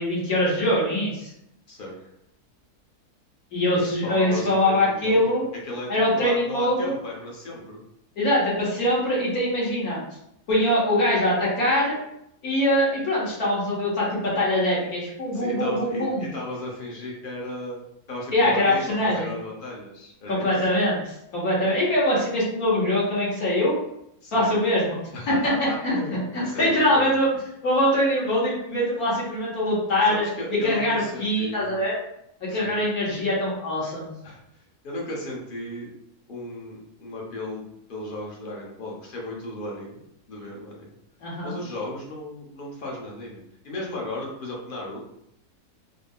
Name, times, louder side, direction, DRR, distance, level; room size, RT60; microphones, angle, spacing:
voice 1, 0.0-1.3 3.5-5.4 5.9-7.0 8.2-10.0 10.5-12.0 12.4-16.3 18.3-19.3 20.3-23.7 24.3-25.0 25.3-27.3 27.6-30.2 30.5-32.0 32.4-34.1 41.2-41.5, left 1 dB, 65° left, -6 dB, 1.9 m, -23 dB
voice 2, 3.7-5.3 5.6-7.8 15.3-17.8 18.1-20.5 24.2-24.5 25.1-27.1 30.1-31.7 32.5-32.8 34.2-34.4 34.8-35.9 36.3-40.0 40.3-40.9 41.4-45.0, left 1 dB, 40° left, -3 dB, 0.8 m, -35 dB
3.9 x 2.1 x 3.5 m, 0.77 s
omnidirectional pair, 1.7 m